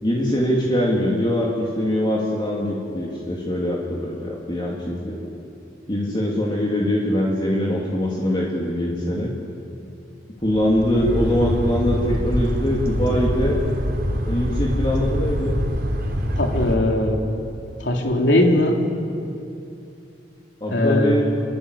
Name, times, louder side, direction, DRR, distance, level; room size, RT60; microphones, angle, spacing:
voice 1, 0.0-5.2 5.9-9.3 10.4-13.6 14.2-15.5 20.6-21.2, left 1 dB, 25° left, -3 dB, 2.9 m, -22 dB
sound 1, 10.4-16.8, equal, 60° right, 3.8 m, -25 dB
voice 2, 16.4-17.2 17.8-18.8 20.7-21.2, left 1 dB, 75° left, 1 dB, 3.5 m, -19 dB
28.0 x 22.5 x 8.4 m, 2.7 s
head